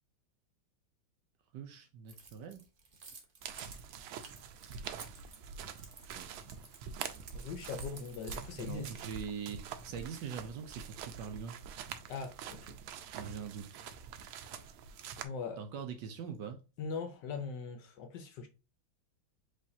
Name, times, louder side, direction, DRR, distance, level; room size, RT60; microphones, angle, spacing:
voice 1, 1.5-2.6 6.1-6.3 8.6-11.6 13.1-13.8 15.6-16.6, right 7 dB, 70° right, 1.2 m, -43 dB
Keys jangling, 2.1-9.8, right 4 dB, 45° right, 0.7 m, -53 dB
sound 1, 3.4-15.3, right 7 dB, 85° right, 1.4 m, -45 dB
voice 2, 7.3-8.9 12.1-12.8 15.2-15.6 16.8-18.5, left 5 dB, 70° left, 1.2 m, -41 dB
4.9 x 3.2 x 2.7 m
omnidirectional pair, 2.3 m